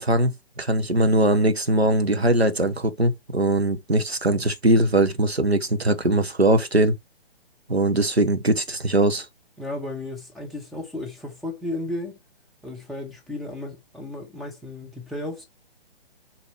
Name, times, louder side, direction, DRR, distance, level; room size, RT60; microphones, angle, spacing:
voice 1, 0.0-7.0 7.7-9.2, right 1 dB, 85° right, 1.5 m, -21 dB
voice 2, 9.6-12.2 12.6-15.4, left 2 dB, ahead, 1.3 m, -34 dB
7.4 x 4.8 x 3.2 m
figure-of-eight pair, 130°, 31 cm